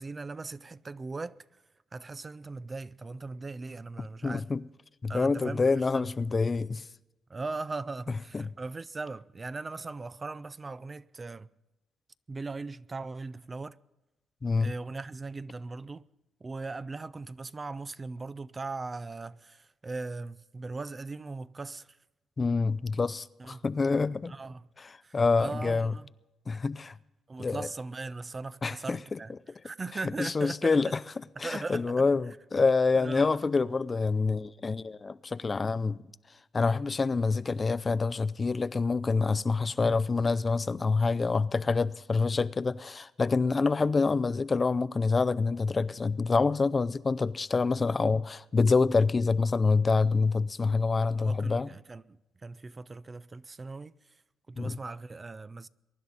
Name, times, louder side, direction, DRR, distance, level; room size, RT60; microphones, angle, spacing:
voice 1, 0.0-1.4 1.9-4.5 5.1-6.1 7.3-11.5 12.3-13.8 14.6-16.1 16.4-22.0 23.4-23.7 24.3-24.7 25.0-26.1 27.3-29.3 29.6-30.9 31.4-32.0 32.9-33.4 39.8-40.0 51.2-54.2 54.5-55.7, right 3 dB, 30° right, 0.4 m, -39 dB
voice 2, 4.2-4.6 5.0-6.8 8.3-8.5 14.4-14.7 22.4-24.3 25.1-25.9 26.5-26.9 27.4-27.7 28.6-29.2 30.2-30.9 31.4-36.0 36.5-51.7 54.6-54.8, left 4 dB, 30° left, 0.4 m, -26 dB
23.0 x 11.0 x 4.0 m
cardioid pair, 90°, 0 cm